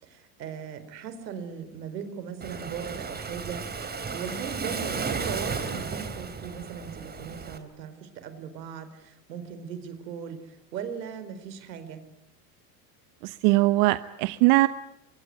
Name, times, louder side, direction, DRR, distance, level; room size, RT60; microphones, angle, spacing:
voice 1, 0.0-12.0, right 7 dB, 85° right, 11 dB, 4.4 m, -38 dB
Waves surf, 2.4-7.6, right 5 dB, 20° right, 3.4 m, -34 dB
voice 2, 13.2-14.7, right 21 dB, 60° right, 12 dB, 1.1 m, -21 dB
24.5 x 23.0 x 9.5 m, 0.82 s
supercardioid pair, 110°, 49 cm